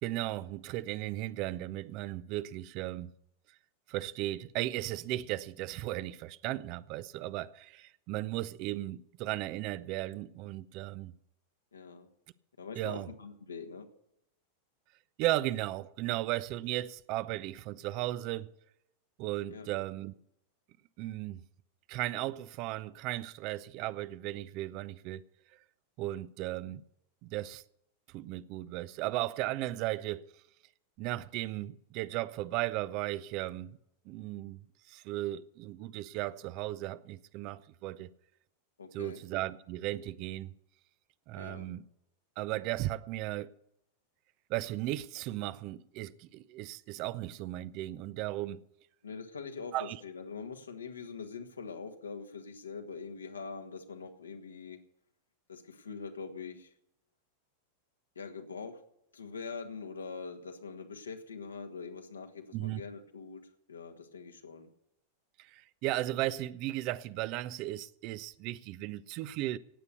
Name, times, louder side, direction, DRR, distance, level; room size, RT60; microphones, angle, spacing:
voice 1, 0.0-3.1 3.9-11.1 12.8-13.1 15.2-18.5 19.2-20.1 21.0-21.4 21.9-25.2 26.0-26.8 27.2-27.6 28.1-30.3 31.0-33.7 34.1-34.6 34.9-38.1 38.9-40.5 41.3-41.8 42.4-43.5 44.5-48.6 49.7-50.0 62.5-62.8 65.4-69.6, right 16 dB, 40° right, 0.6 m, -36 dB
voice 2, 11.7-12.1 12.6-13.9 19.5-19.7 38.8-39.2 41.3-41.7 49.0-54.8 55.5-56.7 58.2-58.8 59.1-63.4 63.7-64.7, left 5 dB, 75° left, 1.7 m, -43 dB
17.5 x 8.3 x 6.8 m
figure-of-eight pair, 90°, 0 cm